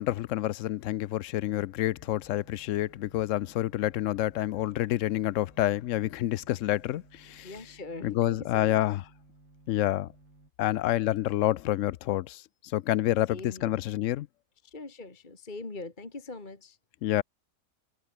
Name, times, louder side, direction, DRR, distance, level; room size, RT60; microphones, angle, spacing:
voice 1, 0.0-7.5 8.0-9.0 9.7-10.1 10.6-12.4 12.7-14.3 17.0-17.2, left 14 dB, 65° left, 0.8 m, -28 dB
sound 1, 1.9-10.5, right 2 dB, 85° right, 6.7 m, -58 dB
voice 2, 7.4-8.8 13.3-13.8 14.6-16.8, left 3 dB, 30° left, 2.1 m, -42 dB
omnidirectional pair, 1.7 m